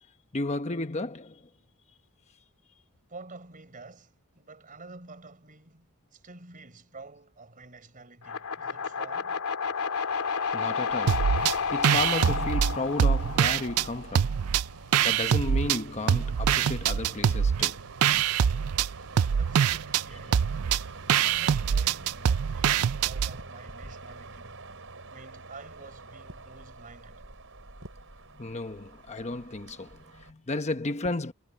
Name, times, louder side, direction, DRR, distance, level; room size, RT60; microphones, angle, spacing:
voice 1, 0.3-1.5 10.5-11.4 11.7-14.4 15.0-17.8 28.4-31.3, left 2 dB, 30° left, 1.1 m, -33 dB
voice 2, 3.1-9.4 19.2-20.5 21.2-24.6 25.1-27.3, right 3 dB, 40° right, 4.6 m, -49 dB
sound 1, 8.2-14.4, left 5 dB, 90° left, 2.9 m, -31 dB
sound 2, 10.9-30.3, right 3 dB, 65° right, 5.3 m, -47 dB
sound 3, 11.1-11.6 11.8-13.9 14.1-15.8 16.1-23.3, right 8 dB, 80° right, 0.4 m, -24 dB
head